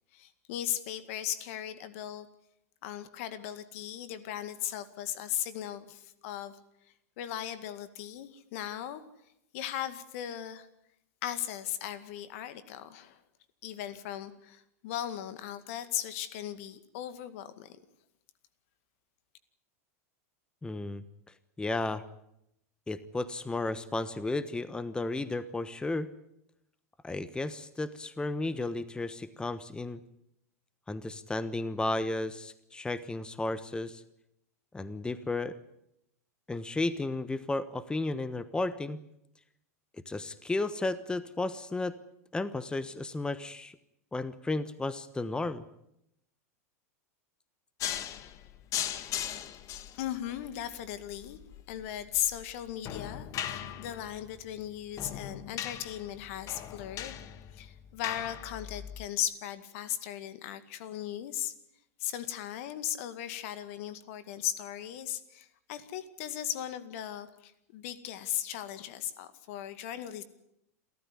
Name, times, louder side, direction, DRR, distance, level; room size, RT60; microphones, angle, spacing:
voice 1, 0.1-2.3 2.8-6.6 7.2-9.0 9.5-10.7 11.2-13.2 13.6-17.8 50.0-51.4 51.7-57.2 57.5-61.5 62.0-70.2, left 11 dB, 60° left, 13 dB, 2.1 m, -37 dB
voice 2, 20.6-21.0 21.6-22.0 22.9-26.1 27.0-30.0 30.9-34.0 34.7-35.5 36.5-39.0 40.1-42.0 42.3-43.8 44.1-45.6, left 2 dB, 10° left, 15 dB, 1.2 m, -33 dB
sound 1, 47.8-59.1, left 10 dB, 40° left, 1.7 m, -39 dB
28.5 x 14.0 x 9.9 m, 0.81 s
hypercardioid pair, 95°, 8 cm